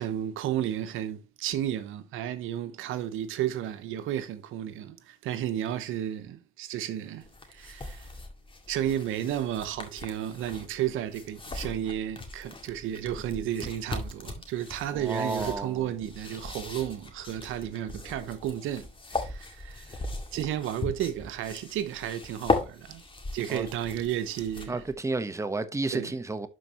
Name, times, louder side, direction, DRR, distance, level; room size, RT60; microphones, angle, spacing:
voice 1, 0.0-8.1 8.7-23.0 23.3-24.8 25.9-26.1, right 11 dB, 90° right, 0.9 m, -33 dB
sound 1, 7.2-24.9, left 3 dB, 25° left, 2.0 m, -38 dB
voice 2, 14.9-15.8 23.5-23.7 24.7-26.5, right 3 dB, 15° right, 1.0 m, -31 dB
12.0 x 4.6 x 2.9 m
cardioid pair, 90°, 20 cm